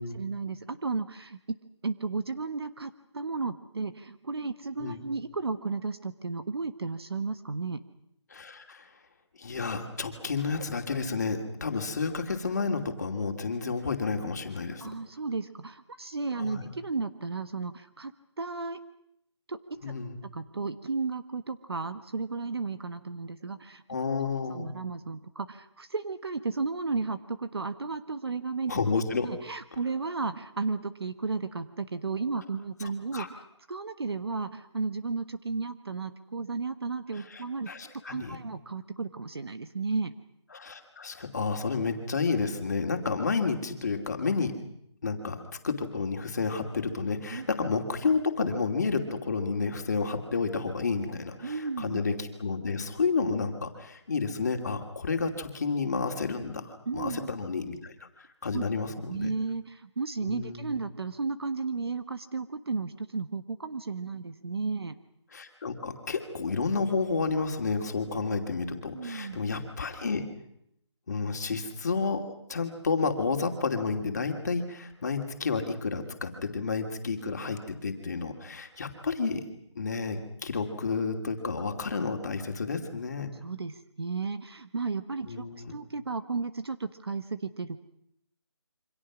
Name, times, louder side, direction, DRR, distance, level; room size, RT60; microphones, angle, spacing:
voice 1, 0.1-1.6 1.8-7.8 14.8-18.8 19.5-19.8 20.3-23.8 24.5-28.8 29.2-33.3 33.7-37.7 38.0-40.1 47.3-47.5 51.4-52.0 56.9-57.3 58.5-58.6 59.1-65.0 68.9-69.4 83.4-87.8, right 4 dB, 55° right, 10 dB, 1.3 m, -33 dB
voice 2, 8.3-8.9 9.4-14.9 16.4-16.7 19.8-20.2 23.9-24.7 28.7-29.3 32.8-33.3 37.1-38.4 40.5-44.6 45.0-45.4 45.6-59.3 60.2-60.8 65.3-70.3 71.1-72.2 72.5-79.4 79.7-83.3 85.3-85.7, left 4 dB, 35° left, 5 dB, 2.7 m, -31 dB
27.5 x 25.5 x 6.2 m, 0.75 s
figure-of-eight pair, 175°, 15 cm